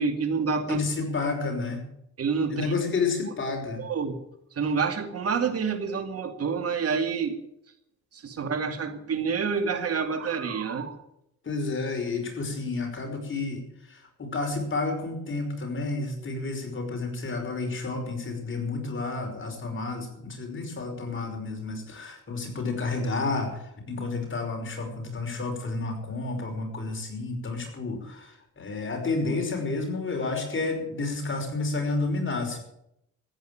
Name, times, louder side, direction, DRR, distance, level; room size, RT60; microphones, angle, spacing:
voice 1, 0.0-0.8 2.2-2.7 3.8-4.2 4.6-7.4 8.1-11.0, right 5 dB, 50° right, 7 dB, 2.4 m, -28 dB
voice 2, 0.7-1.8 2.5-3.8 11.4-13.6 13.9-32.6, left 3 dB, 40° left, 3 dB, 5.5 m, -30 dB
15.0 x 9.4 x 9.2 m, 0.78 s
cardioid pair, 90°, 30 cm